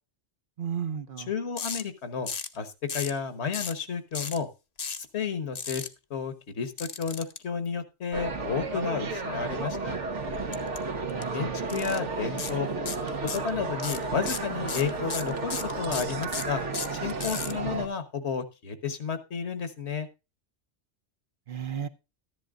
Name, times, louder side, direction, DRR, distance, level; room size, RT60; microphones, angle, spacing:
voice 1, 0.6-1.3 11.1-11.6 21.5-21.9, right 8 dB, 55° right, 10 dB, 0.7 m, -34 dB
voice 2, 1.2-2.3 2.5-4.5 5.0-5.8 6.1-10.0 11.3-12.7 13.3-16.6 16.9-20.1, left 6 dB, 70° left, 11 dB, 1.4 m, -32 dB
sound 1, 1.6-1.8 2.3-2.6 2.9-3.2 3.5-3.8 4.1-4.4 4.8-5.0 5.6-5.9 6.8-7.4 10.5-10.8 11.1-11.2 11.7-12.0 12.4-12.5 12.9-13.5 13.8-17.5, left 5 dB, 40° left, 0.7 m, -34 dB
sound 2, 8.1-17.9, right 3 dB, 85° right, 1.6 m, -32 dB
13.5 x 11.0 x 2.4 m, 0.28 s
omnidirectional pair, 1.2 m